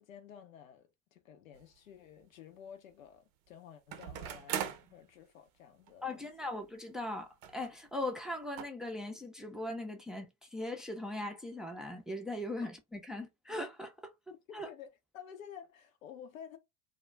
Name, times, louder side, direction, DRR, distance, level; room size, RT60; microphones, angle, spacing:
voice 1, 0.0-6.3 12.6-12.7 14.5-16.6, left 8 dB, 85° left, 0.7 m, -52 dB
sound 1, 1.6-1.7 3.9-4.9 5.9-6.0 6.2-6.3 7.4-7.7 8.0-8.1 8.6-8.7, right 9 dB, 60° right, 0.6 m, -39 dB
voice 2, 6.0-13.9 14.5-14.7, left 1 dB, ahead, 0.5 m, -39 dB
2.2 x 2.1 x 3.2 m
hypercardioid pair, 75°, 39 cm